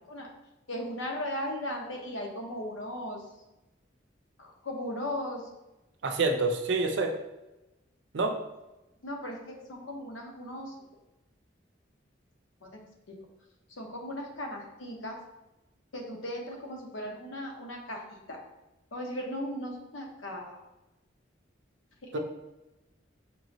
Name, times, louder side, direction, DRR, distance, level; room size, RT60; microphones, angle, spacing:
voice 1, 0.7-3.2 4.4-5.4 9.0-10.7 12.6-12.8 13.1-13.2 13.8-15.2 15.9-18.0 18.3-18.4 18.9-20.6 22.0-22.2, left 1 dB, 90° left, 1 dB, 0.8 m, -37 dB
voice 2, 6.0-7.2 8.1-8.4 22.1-22.2, right 3 dB, 65° right, 4 dB, 0.5 m, -27 dB
4.7 x 3.0 x 2.6 m, 0.98 s
head